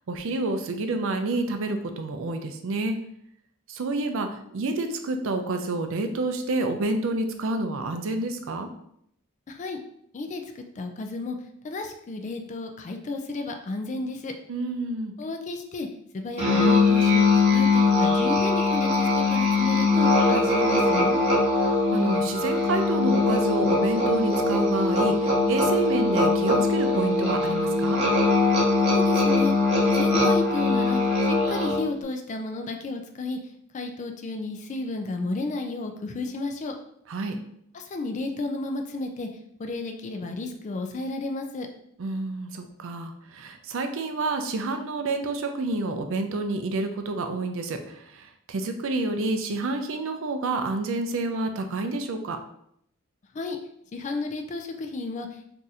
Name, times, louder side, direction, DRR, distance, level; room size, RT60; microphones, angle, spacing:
voice 1, 0.1-3.0 3.7-8.7 14.5-15.1 21.6-28.0 37.1-37.4 42.0-52.4, right 2 dB, 65° right, 6 dB, 0.4 m, -29 dB
voice 2, 9.5-9.8 10.1-11.4 11.6-14.3 15.2-15.9 16.1-21.2 28.9-29.5 29.9-33.4 33.7-36.8 37.7-39.3 39.6-41.7 53.3-53.6 53.9-55.4, left 3 dB, 35° left, 5 dB, 0.3 m, -32 dB
Musical instrument, 16.4-31.9, left 3 dB, 30° right, 0.8 m, -21 dB
2.7 x 2.4 x 4.0 m, 0.71 s
head